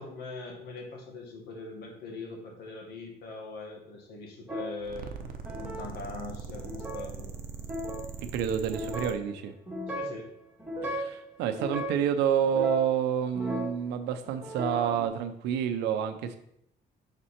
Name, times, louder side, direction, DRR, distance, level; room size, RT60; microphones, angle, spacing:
voice 1, 0.0-5.3 5.6-7.3 9.9-10.3, left 3 dB, 70° left, 1 dB, 1.8 m, -42 dB
sound 1, 4.5-4.9 5.4-5.9 6.5-7.0 7.6-8.1 8.7-9.2 9.7-10.2 10.6-11.2 11.5-12.0 12.4-13.8 14.2-15.1, equal, 10° right, 1.9 m, -35 dB
sound 2, 4.8-9.1, right 5 dB, 60° right, 0.8 m, -41 dB
voice 2, 8.2-9.5 10.8-16.4, right 8 dB, 85° right, 9 dB, 0.7 m, -29 dB
5.9 x 4.4 x 4.3 m, 0.75 s
cardioid pair, 110°, 17 cm